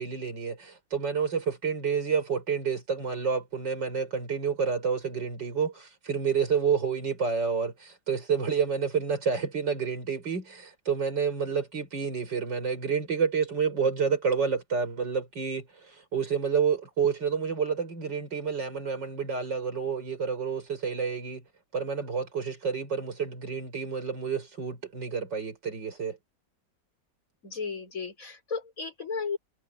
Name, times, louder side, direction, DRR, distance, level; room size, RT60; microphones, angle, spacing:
voice 1, 0.0-21.4 21.7-26.2, right 6 dB, 90° right, 5.7 m, -29 dB
voice 2, 27.4-29.4, left 5 dB, 50° left, 4.6 m, -34 dB
omnidirectional pair, 1.9 m